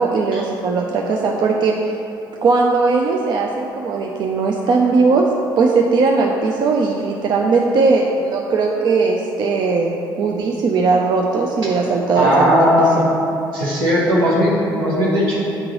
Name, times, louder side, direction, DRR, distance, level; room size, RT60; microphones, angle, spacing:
voice 1, 0.0-2.0 2.4-5.2 5.6-12.9, right 4 dB, 40° right, 0 dB, 0.4 m, -18 dB
voice 2, 12.1-13.1 13.5-15.4, equal, 75° right, -7 dB, 1.3 m, -17 dB
8.9 x 3.7 x 3.0 m, 2.9 s
figure-of-eight pair, 50°, 11 cm